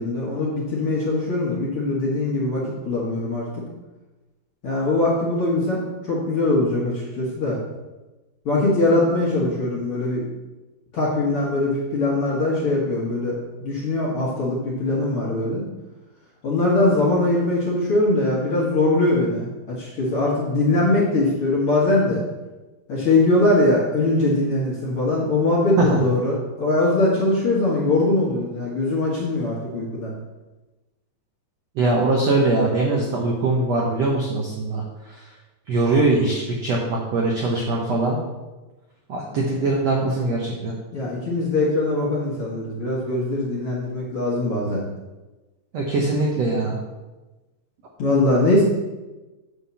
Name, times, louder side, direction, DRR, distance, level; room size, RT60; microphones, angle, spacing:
voice 1, 0.0-3.5 4.6-7.6 8.5-10.2 10.9-15.6 16.4-22.2 22.9-30.1 39.3-39.4 40.9-44.8 48.0-48.6, left 2 dB, 50° left, -6 dB, 1.8 m, -21 dB
voice 2, 31.8-34.8 35.7-38.2 39.1-40.7 45.7-46.8, right 2 dB, 70° right, -1 dB, 1.5 m, -21 dB
8.8 x 3.7 x 7.0 m, 1.1 s
omnidirectional pair, 4.3 m